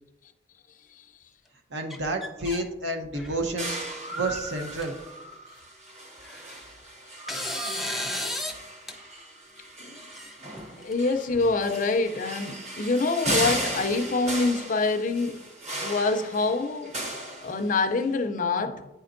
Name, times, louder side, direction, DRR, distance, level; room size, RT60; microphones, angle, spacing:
voice 1, 1.7-4.9, right 1 dB, 80° right, 0.9 m, -30 dB
sound 1, 1.9-2.6 3.0-3.5 4.3-4.4 4.8-4.9 6.2-6.8 7.3-8.6 8.9-9.0 10.1-10.9, left 1 dB, ahead, 0.5 m, -34 dB
sound 2, 3.6-18.0, right 1 dB, 40° right, 1.0 m, -36 dB
voice 2, 10.8-15.4 15.8-16.9 17.4-18.9, left 3 dB, 50° left, 0.5 m, -26 dB
9.0 x 4.3 x 2.6 m
head